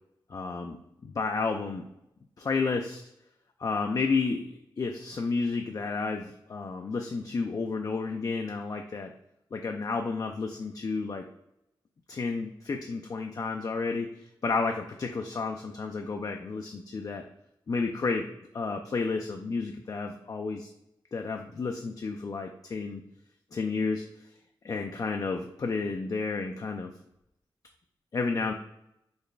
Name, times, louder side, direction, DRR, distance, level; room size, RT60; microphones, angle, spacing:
voice 1, 0.3-0.8 1.0-1.9 2.4-3.0 3.6-4.5 4.8-9.1 9.5-11.3 12.1-17.2 17.7-18.3 18.5-20.7 21.1-23.0 23.5-24.0 24.6-26.9 28.1-28.5, left 4 dB, 40° left, 4 dB, 0.3 m, -31 dB
3.9 x 2.2 x 3.2 m, 0.81 s
cardioid pair, 65°, 9 cm